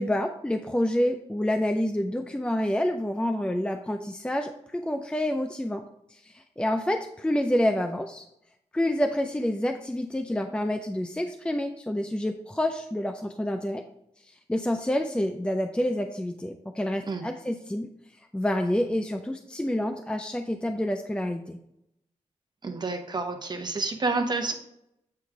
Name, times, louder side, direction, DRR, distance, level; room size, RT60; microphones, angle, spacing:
voice 1, 0.0-5.8 6.1-8.2 8.7-13.8 14.3-17.9 18.3-21.6, left 1 dB, 10° left, 5 dB, 0.5 m, -28 dB
voice 2, 22.6-24.5, right 3 dB, 35° right, 5 dB, 1.0 m, -29 dB
8.6 x 3.1 x 4.8 m, 0.78 s
cardioid pair, 80°, 12 cm